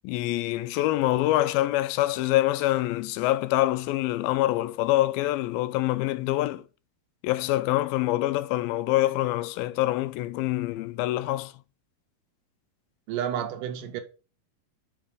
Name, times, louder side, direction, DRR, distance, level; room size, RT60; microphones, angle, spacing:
voice 1, 0.0-6.6 7.2-11.5, left 16 dB, 90° left, 2.4 m, -25 dB
voice 2, 13.1-14.0, right 9 dB, 75° right, 2.1 m, -30 dB
5.8 x 5.6 x 4.9 m
omnidirectional pair, 4.1 m